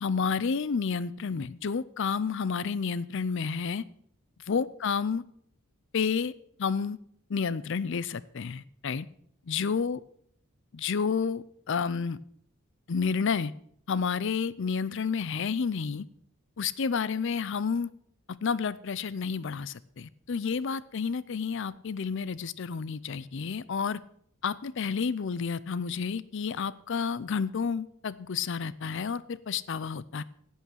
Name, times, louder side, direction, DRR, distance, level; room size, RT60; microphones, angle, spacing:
voice 1, 0.0-3.8 4.5-5.2 5.9-6.3 6.6-7.0 7.3-9.1 9.5-10.0 10.7-12.2 12.9-13.5 13.9-16.1 16.6-17.9 18.4-24.0 24.4-30.2, left 5 dB, 55° left, 19 dB, 0.5 m, -30 dB
10.5 x 8.2 x 6.2 m, 0.66 s
head